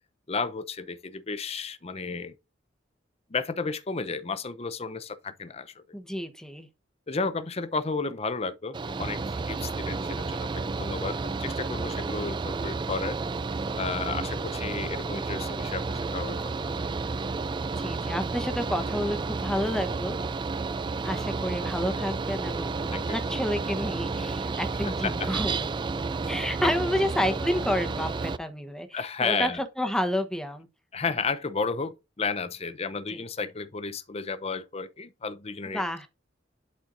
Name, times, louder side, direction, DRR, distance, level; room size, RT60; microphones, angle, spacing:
voice 1, 0.3-2.3 3.3-5.8 7.1-13.2 13.8-16.7 22.9-23.2 25.0-25.3 28.9-29.6 30.9-36.1, left 4 dB, 35° left, 0.6 m, -33 dB
voice 2, 5.9-6.7 17.6-20.2 21.0-25.7 26.3-30.7 33.1-33.2 35.7-36.1, equal, 5° left, 1.0 m, -30 dB
Mechanical fan, 8.7-28.4, right 4 dB, 25° right, 0.3 m, -31 dB
11.5 x 4.5 x 2.6 m
head